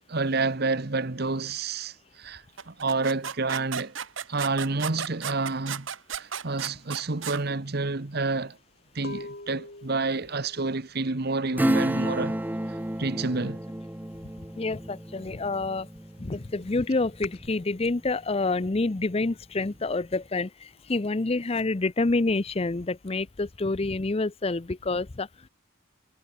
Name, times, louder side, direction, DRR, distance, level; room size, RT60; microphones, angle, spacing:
voice 1, 0.1-3.9 4.3-5.9 6.2-8.6 8.9-12.4 13.0-13.6, right 3 dB, 50° right, 1.1 m, -29 dB
sound 1, 2.6-7.4, right 7 dB, 70° right, 1.4 m, -34 dB
sound 2, 6.1-6.3 6.6-12.3 12.6-13.1 13.4-14.5 14.9-17.5, left 2 dB, 50° left, 5.7 m, -45 dB
Acoustic guitar / Strum, 11.6-17.8 18.2-18.3, right 1 dB, 10° right, 0.7 m, -31 dB
voice 2, 14.6-15.9 16.2-25.5, left 3 dB, 30° left, 0.6 m, -28 dB
head